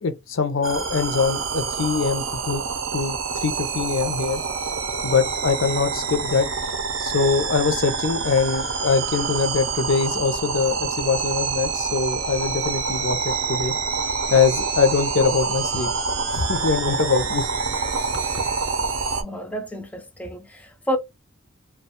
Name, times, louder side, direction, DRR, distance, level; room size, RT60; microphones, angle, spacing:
voice 1, 0.0-2.6 2.9-4.4 5.0-6.5 7.0-13.7 14.3-15.9 16.3-17.5, left 5 dB, 70° left, 0.5 m, -23 dB
sound 1, 0.6-19.2, right 5 dB, 75° right, 0.5 m, -27 dB
voice 2, 19.2-21.0, equal, 5° left, 0.3 m, -30 dB
2.3 x 2.2 x 2.8 m
head